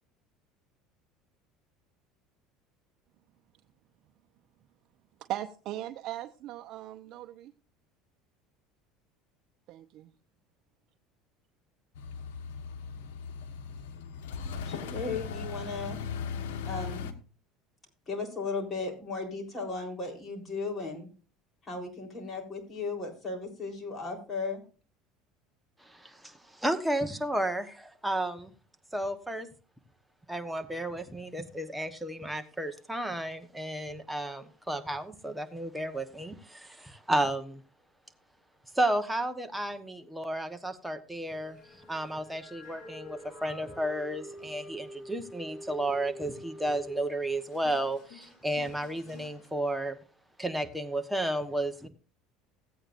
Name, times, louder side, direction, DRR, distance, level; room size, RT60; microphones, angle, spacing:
voice 1, 5.3-7.5 9.7-10.1, right 13 dB, 55° right, 6 dB, 0.7 m, -38 dB
sound 1, 11.9-17.1, left 6 dB, 85° left, 1.2 m, -38 dB
voice 2, 14.6-16.0 16.6-17.2 18.1-21.1 21.6-24.6, left 3 dB, 25° left, 1 dB, 3.8 m, -36 dB
voice 3, 25.8-28.5 28.9-29.5 30.3-37.6 38.7-41.6 41.9-50.0 50.4-51.9, right 1 dB, 5° right, 7 dB, 1.1 m, -32 dB
sound 2, 41.3-49.6, equal, 45° left, 3.5 m, -48 dB
15.5 x 8.7 x 2.6 m, 0.35 s
supercardioid pair, 115°, 0 cm